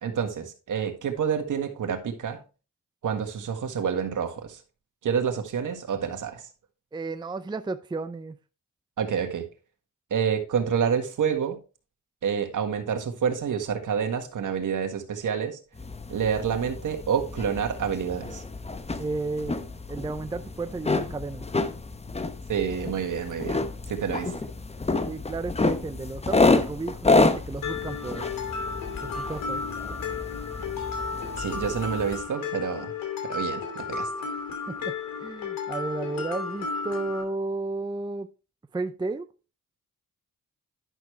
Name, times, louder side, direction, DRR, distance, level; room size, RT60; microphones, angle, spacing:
voice 1, 0.0-2.4 3.0-4.6 5.0-6.4 9.0-9.4 10.1-11.6 12.2-15.6 16.1-18.4 22.5-24.3 31.4-32.9 33.3-34.1, right 7 dB, 65° right, 1.7 m, -28 dB
voice 2, 6.9-8.4 19.0-21.5 25.1-28.3 29.0-29.6 34.7-38.3 38.7-39.3, right 3 dB, 15° right, 0.5 m, -33 dB
sound 1, 15.8-32.2, left 3 dB, 20° left, 0.9 m, -29 dB
Mallet percussion, 27.6-37.2, left 5 dB, 85° left, 2.7 m, -33 dB
11.0 x 6.1 x 3.3 m
cardioid pair, 75°, 33 cm